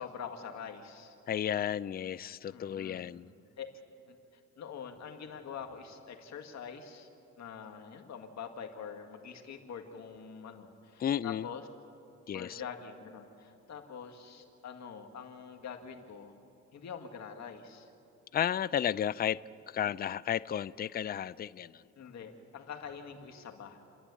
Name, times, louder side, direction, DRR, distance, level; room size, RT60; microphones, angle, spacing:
voice 1, 0.0-1.2 2.5-3.1 3.6-3.7 4.1-7.1 7.4-11.6 12.3-16.4 16.7-17.9 22.0-23.8, left 7 dB, 60° left, 4 dB, 2.1 m, -45 dB
voice 2, 1.3-3.3 11.0-11.4 12.3-12.6 18.3-19.4 19.7-21.8, left 9 dB, 30° left, 19 dB, 0.4 m, -33 dB
29.5 x 11.0 x 8.5 m, 2.6 s
cardioid pair, 90°, 30 cm